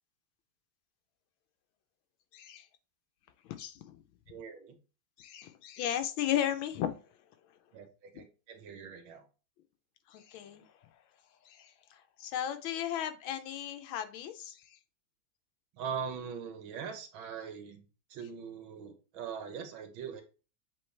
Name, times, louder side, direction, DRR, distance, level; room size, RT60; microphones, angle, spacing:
voice 1, 2.3-2.7 3.4-4.0 5.2-7.1 10.1-10.9 11.4-14.8, left 11 dB, 85° left, 8 dB, 1.4 m, -36 dB
voice 2, 4.3-4.8 7.7-9.2 15.8-17.8 18.1-20.2, right 7 dB, 80° right, 6 dB, 1.8 m, -41 dB
7.7 x 3.8 x 3.2 m, 0.35 s
omnidirectional pair, 2.2 m